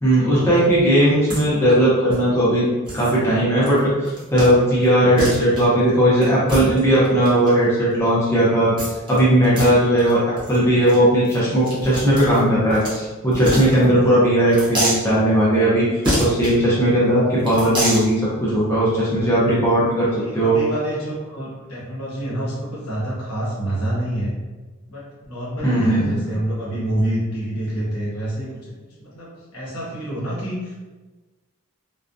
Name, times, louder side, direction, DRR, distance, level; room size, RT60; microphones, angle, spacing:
voice 1, 0.0-2.6 2.9-8.7 9.1-10.2 10.5-15.8 16.2-20.6 25.6-26.2, right 1 dB, 10° left, -8 dB, 0.6 m, -17 dB
sound 1, 1.3-1.4 1.7-1.8 2.1-2.2 2.9-3.1 3.6-3.8 4.1-4.5 4.8-4.9 5.2-5.6 6.2-7.5 8.8-9.2 9.4-9.7 10.0-10.1 10.4-10.6 10.8-10.9 11.2-12.9 13.3-14.1 14.5-15.0 16.0-16.5 17.4-18.0, equal, 20° right, 0.7 m, -25 dB
voice 2, 20.1-24.3 24.9-28.7 29.0-30.7, right 1 dB, 90° left, -6 dB, 0.9 m, -27 dB
2.3 x 2.1 x 2.5 m, 1.2 s
head